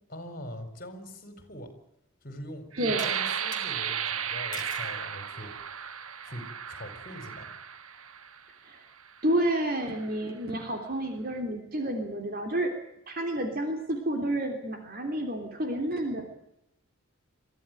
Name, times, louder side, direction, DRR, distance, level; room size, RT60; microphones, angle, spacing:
voice 1, 0.1-1.7 2.2-5.5 6.2-7.5, equal, 40° left, 8 dB, 4.5 m, -42 dB
sound 1, 1.6-1.7 3.0-3.7 4.5-4.9 5.6-6.0, left 5 dB, 20° left, 3.5 m, -44 dB
sound 2, 2.7-8.4 9.1-9.2 9.7-10.1, right 8 dB, 80° right, 1.5 m, -34 dB
voice 2, 2.8-3.1 8.6-8.8 9.2-12.7 13.1-16.2, right 1 dB, 45° right, 4 dB, 3.2 m, -30 dB
23.0 x 15.0 x 9.2 m, 0.81 s
head